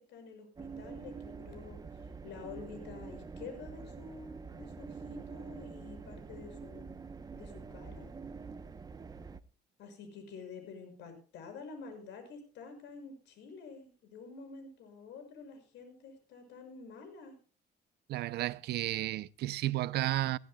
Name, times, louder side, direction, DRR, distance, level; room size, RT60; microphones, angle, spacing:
voice 1, 0.0-6.9 7.3-8.1 9.8-17.4, left 4 dB, 80° left, 6.3 m, -49 dB
sound 1, 0.6-9.4, right 5 dB, 20° right, 0.8 m, -46 dB
voice 2, 18.1-20.4, right 15 dB, 65° right, 0.6 m, -32 dB
21.0 x 15.5 x 2.3 m
cardioid pair, 140°, 18 cm